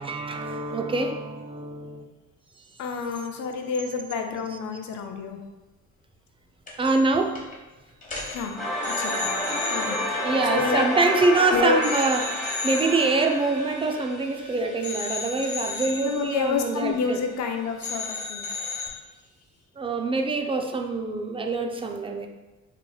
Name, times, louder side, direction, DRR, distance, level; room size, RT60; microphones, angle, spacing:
voice 1, 0.0-2.0 6.8-7.4 10.2-17.2 19.8-22.3, right 3 dB, 20° right, 4 dB, 0.4 m, -25 dB
voice 2, 2.8-5.4 8.3-8.6 8.9-9.3 9.7-11.1 11.5-11.8 16.0-18.5, left 5 dB, 70° left, 4 dB, 0.5 m, -29 dB
sound 1, 6.7-7.1 7.4-7.6 8.0-11.4 11.8-14.4 14.8-17.5 17.8-18.9, left 4 dB, 25° left, 1.0 m, -35 dB
sound 2, 8.6-15.4, left 1 dB, ahead, 1.1 m, -30 dB
4.3 x 3.0 x 2.3 m, 1.1 s
cardioid pair, 90°, 30 cm